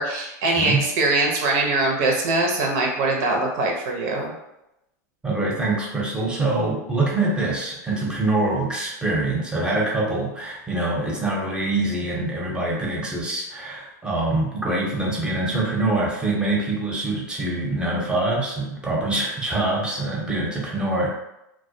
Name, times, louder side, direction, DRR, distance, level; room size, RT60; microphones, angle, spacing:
voice 1, 0.0-4.3, right 2 dB, 60° right, 1 dB, 0.6 m, -22 dB
voice 2, 5.2-21.1, right 2 dB, 10° right, -3 dB, 0.7 m, -24 dB
2.2 x 2.1 x 2.6 m, 0.87 s
hypercardioid pair, 115°, 10 cm